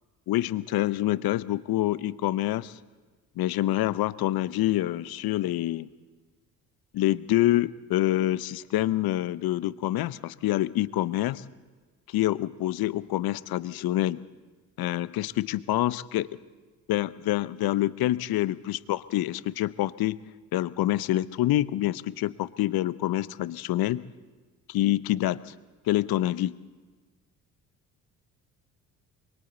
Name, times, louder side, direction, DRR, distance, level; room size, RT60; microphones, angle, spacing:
voice 1, 0.3-2.8 3.4-5.9 6.9-11.4 12.1-14.2 14.8-16.3 16.9-20.2 20.5-24.0 24.7-25.5 25.9-26.6, left 15 dB, 55° left, 17 dB, 0.8 m, -26 dB
27.0 x 23.5 x 4.0 m, 1.3 s
hypercardioid pair, 50°, 43 cm